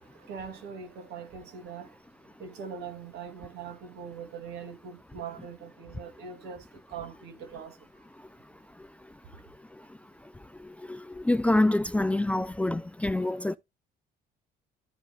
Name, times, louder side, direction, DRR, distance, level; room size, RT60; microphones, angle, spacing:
voice 1, 0.0-2.0 2.2-7.8, right 6 dB, 80° right, 2.7 m, -42 dB
voice 2, 10.6-13.6, left 1 dB, 10° left, 0.4 m, -26 dB
14.0 x 5.5 x 2.4 m
cardioid pair, 110°, 17 cm